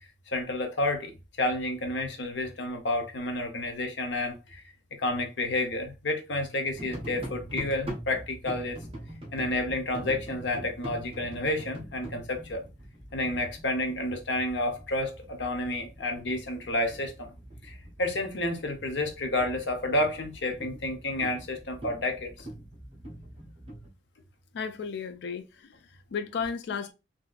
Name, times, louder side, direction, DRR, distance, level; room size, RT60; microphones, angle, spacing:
voice 1, 0.3-1.1 1.4-4.6 5.0-8.8 9.3-12.6 13.1-17.3 17.6-22.5, left 1 dB, 85° left, 0.8 m, -30 dB
sound 1, 6.7-23.9, right 1 dB, 30° right, 1.0 m, -43 dB
voice 2, 24.5-26.9, left 6 dB, 70° left, 0.4 m, -34 dB
3.5 x 2.7 x 2.4 m
head